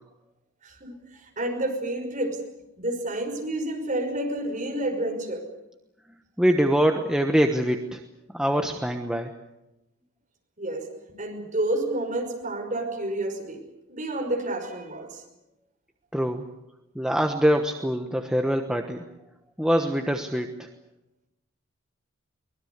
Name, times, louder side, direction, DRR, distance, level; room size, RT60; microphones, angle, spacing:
voice 1, 0.6-0.9 1.2-2.4 2.8-5.4 10.6-13.6 13.9-15.2, right 1 dB, 35° right, 2 dB, 5.8 m, -29 dB
voice 2, 6.4-8.0 8.3-9.3 16.1-16.5 16.9-19.0 19.6-20.7, equal, 5° right, 3 dB, 1.2 m, -24 dB
23.5 x 21.0 x 8.1 m, 0.92 s
head